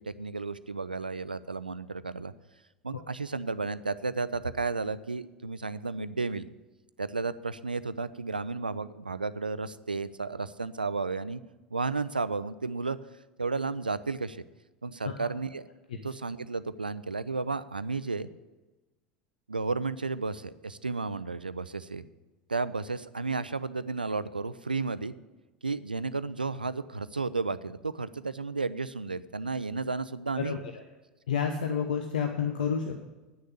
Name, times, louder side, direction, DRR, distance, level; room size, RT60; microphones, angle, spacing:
voice 1, 0.1-2.3 2.8-6.5 7.0-11.4 11.7-13.0 13.4-14.4 14.8-15.6 16.0-18.3 19.5-22.0 22.5-25.1 25.6-30.6, right 4 dB, 85° right, 15 dB, 0.4 m, -33 dB
voice 2, 30.4-30.8 31.3-33.0, left 7 dB, 70° left, 4 dB, 0.9 m, -30 dB
9.8 x 6.6 x 8.3 m, 1.1 s
figure-of-eight pair, 75°, 5 cm